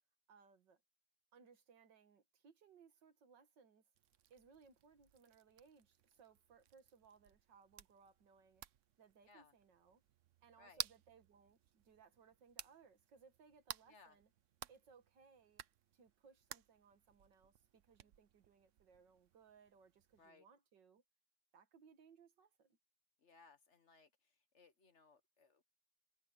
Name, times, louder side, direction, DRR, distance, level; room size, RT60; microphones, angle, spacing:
voice 1, 0.3-0.8 1.3-3.9 4.3-8.6 9.0-10.0 10.4-14.3 14.7-15.7 15.9-21.0 21.5-22.8, right 6 dB, 85° right, 2.4 m, -66 dB
sound 1, 3.9-20.3, right 10 dB, 60° right, 0.9 m, -55 dB
voice 2, 13.9-14.2 20.2-20.5 23.2-25.6, left 4 dB, 45° left, 1.3 m, -65 dB
omnidirectional pair, 1.9 m